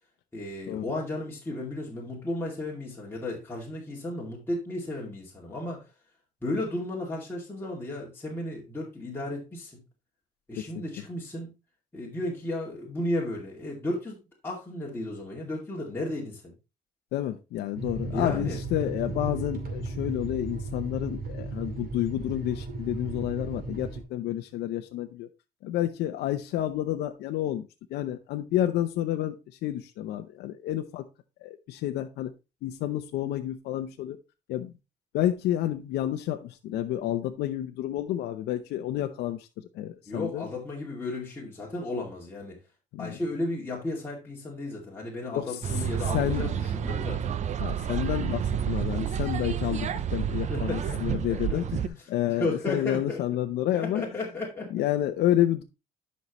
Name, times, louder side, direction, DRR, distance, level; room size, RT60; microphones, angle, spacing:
voice 1, 0.3-5.9 6.4-9.8 10.5-11.5 11.9-14.2 14.4-16.5 18.1-18.6 40.1-42.6 43.0-47.2 50.5-51.6 52.3-53.2 53.7-54.8, left 1 dB, 15° left, -4 dB, 2.4 m, -34 dB
voice 2, 17.1-25.3 25.6-27.6 27.9-29.4 29.6-31.1 31.4-32.3 32.6-34.2 34.5-34.7 35.1-39.5 39.7-40.5 42.9-43.2 45.3-45.6 46.1-46.5 47.6-54.0 54.7-55.6, left 12 dB, 80° left, 6 dB, 0.7 m, -29 dB
sound 1, 17.8-24.0, right 3 dB, 60° right, 2.3 m, -35 dB
sound 2, 45.6-51.9, right 9 dB, 45° right, 0.6 m, -30 dB
11.0 x 5.6 x 3.1 m, 0.27 s
cardioid pair, 110°, 17 cm